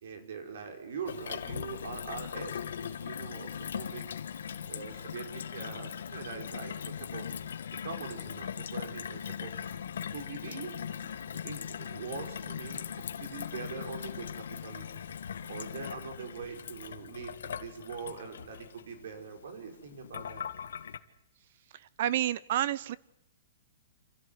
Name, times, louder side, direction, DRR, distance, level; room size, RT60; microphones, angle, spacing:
voice 1, 0.0-4.0 4.7-7.3 7.8-9.5 10.1-10.8 11.3-15.1 15.5-20.5, right 5 dB, 65° right, 5 dB, 5.4 m, -43 dB
Gurgling / Water tap faucet / Sink (filling or washing), 1.1-21.0, left 8 dB, 90° left, 1.8 m, -40 dB
voice 2, 21.7-23.0, right 12 dB, 45° right, 20 dB, 0.8 m, -30 dB
28.0 x 14.0 x 9.8 m, 0.75 s
hypercardioid pair, 175°, 0 cm